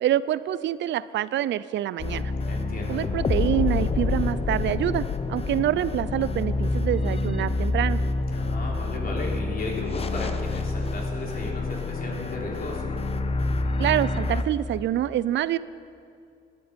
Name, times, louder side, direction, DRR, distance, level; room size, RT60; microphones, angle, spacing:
voice 1, 0.0-2.3 2.9-8.0 13.8-15.6, right 12 dB, 65° right, 17 dB, 0.4 m, -26 dB
sound 1, 2.0-14.4, left 3 dB, 30° left, 0.8 m, -27 dB
voice 2, 2.4-3.0 8.3-12.9, left 2 dB, 50° left, -1 dB, 3.3 m, -35 dB
18.0 x 11.0 x 5.2 m, 2.4 s
cardioid pair, 90°, 20 cm